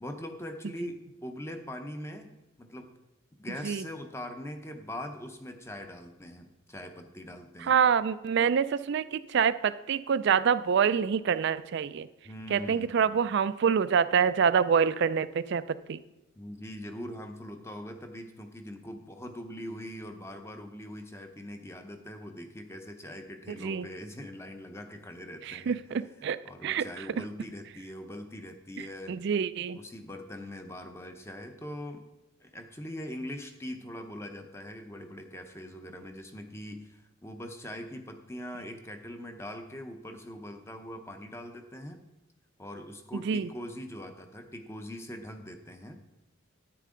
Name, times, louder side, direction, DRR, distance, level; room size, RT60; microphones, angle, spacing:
voice 1, 0.0-2.9 3.4-7.7 12.2-13.2 16.3-25.8 26.4-29.2 29.7-32.1 32.4-42.0 42.6-46.0, left 1 dB, 10° left, 6 dB, 0.7 m, -42 dB
voice 2, 7.7-12.1 12.5-15.6 15.9-16.0 23.6-23.9 25.5-26.4 26.6-27.0 29.1-29.8 43.1-43.5, right 7 dB, 55° right, 14 dB, 0.3 m, -26 dB
10.0 x 9.3 x 3.8 m, 0.96 s
head